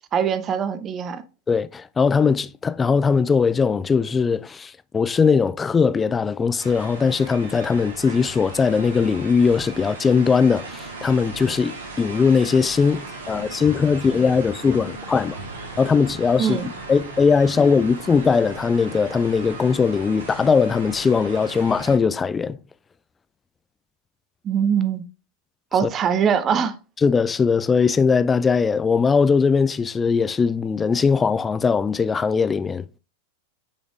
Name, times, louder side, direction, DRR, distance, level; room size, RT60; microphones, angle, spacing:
voice 1, 0.1-1.2 16.4-16.7 24.4-25.0 25.7-26.8, right 7 dB, 25° right, 0.7 m, -22 dB
voice 2, 1.5-15.4 15.8-16.6 16.9-22.6 25.8-25.9 27.0-32.9, left 5 dB, 15° left, 0.3 m, -20 dB
sound 1, 6.6-22.0, right 3 dB, 70° right, 1.7 m, -37 dB
9.6 x 5.0 x 2.5 m
figure-of-eight pair, 90°, 0 cm